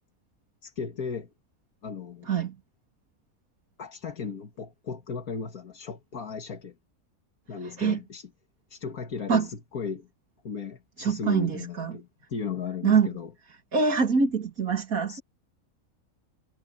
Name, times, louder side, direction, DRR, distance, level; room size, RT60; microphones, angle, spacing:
voice 1, 0.6-1.3 1.8-2.3 3.8-6.8 7.5-8.3 8.7-10.1 10.4-13.3 15.1-15.2, left 6 dB, 85° left, 2.3 m, -36 dB
voice 2, 2.2-2.5 7.6-8.0 9.3-9.5 11.0-12.0 12.8-13.1 13.7-15.2, right 5 dB, 80° right, 2.9 m, -24 dB
omnidirectional pair, 1.5 m